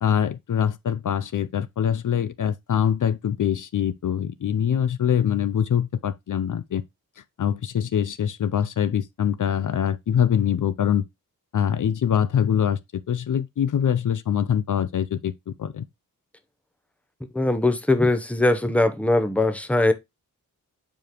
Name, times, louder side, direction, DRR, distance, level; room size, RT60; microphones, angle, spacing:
voice 1, 0.0-6.8 7.4-11.0 11.5-12.8 13.1-15.8, left 9 dB, 65° left, 0.5 m, -24 dB
voice 2, 17.3-19.9, left 2 dB, 5° left, 0.8 m, -21 dB
7.1 x 5.1 x 3.0 m
wide cardioid pair, 130°, 34 cm